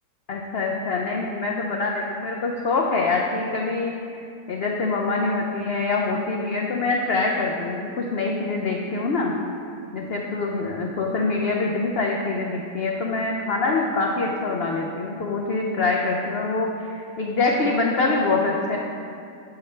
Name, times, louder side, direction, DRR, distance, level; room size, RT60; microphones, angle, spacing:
voice 1, 0.3-3.9 4.5-9.3 9.9-18.8, left 3 dB, 85° left, -1 dB, 0.5 m, -25 dB
9.4 x 5.6 x 3.2 m, 2.5 s
omnidirectional pair, 1.8 m